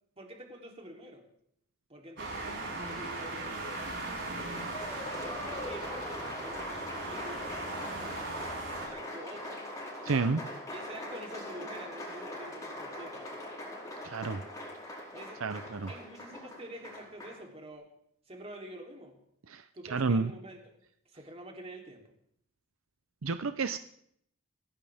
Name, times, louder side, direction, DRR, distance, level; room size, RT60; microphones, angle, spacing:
voice 1, 0.2-1.2 1.9-8.2 8.8-9.6 10.7-13.2 15.1-15.5 15.9-17.9 18.3-19.2 19.7-20.7 21.0-22.1, right 1 dB, 30° right, 1 dB, 3.3 m, -48 dB
sound 1, 2.2-8.9, right 2 dB, 55° right, 7.3 m, -38 dB
Applause, 4.2-17.4, left 1 dB, 15° left, 4.9 m, -42 dB
voice 2, 10.0-10.4 14.0-14.4 15.4-15.9 19.5-19.6 19.9-20.3 23.2-23.8, right 4 dB, 75° right, 11 dB, 0.7 m, -30 dB
24.5 x 16.5 x 3.6 m, 0.69 s
head